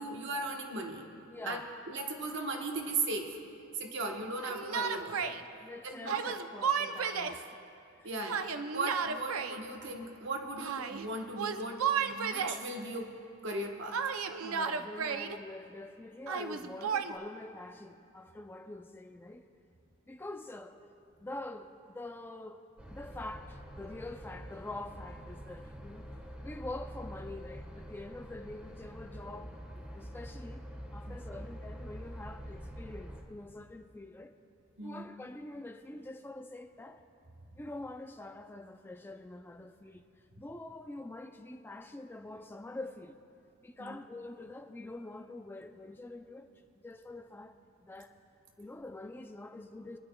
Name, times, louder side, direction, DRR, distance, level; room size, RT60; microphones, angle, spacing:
voice 1, 0.0-1.1 1.5-1.6 1.9-3.4 3.8-5.3 5.9-6.2 8.0-13.1 13.4-14.0 31.1-31.2 34.8-35.0 43.8-44.0, right 2 dB, 60° right, 1.1 m, -37 dB
voice 2, 1.3-1.7 5.3-7.6 8.0-8.1 14.4-19.5 20.1-20.8 21.2-30.7 30.9-34.3 34.8-37.0 37.6-40.1 40.4-43.2 43.6-46.5 46.8-48.1 48.6-50.0, left 2 dB, 10° left, 0.3 m, -45 dB
Yell, 4.4-5.4 6.1-7.4 8.3-9.6 10.6-11.1 11.4-12.7 13.9-15.4 16.3-17.1, right 6 dB, 80° right, 0.5 m, -33 dB
sound 1, 22.8-33.2, equal, 5° right, 1.2 m, -46 dB
25.5 x 11.0 x 2.2 m
head